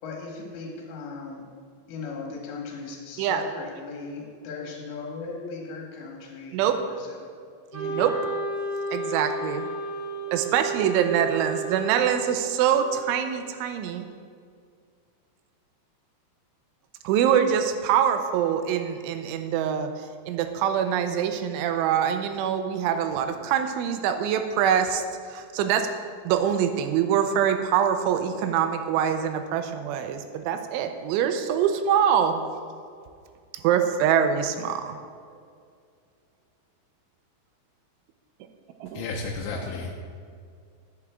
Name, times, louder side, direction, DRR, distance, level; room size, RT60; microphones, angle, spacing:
voice 1, 0.0-1.5 1.9-7.3 7.8-8.3, left 4 dB, 60° left, -1 dB, 3.2 m, -38 dB
Wind instrument woodwind instrument, 7.7-12.8, right 3 dB, 20° right, 0.9 m, -32 dB
voice 2, 7.7-8.1 8.9-9.7 10.3-14.0 17.0-19.9 20.3-25.9 26.3-32.4 33.6-35.0 38.8-39.1, right 8 dB, 85° right, 7 dB, 3.0 m, -24 dB
voice 3, 38.9-39.9, left 3 dB, 80° left, -2 dB, 3.0 m, -32 dB
10.5 x 9.6 x 3.6 m, 2.2 s
omnidirectional pair, 5.6 m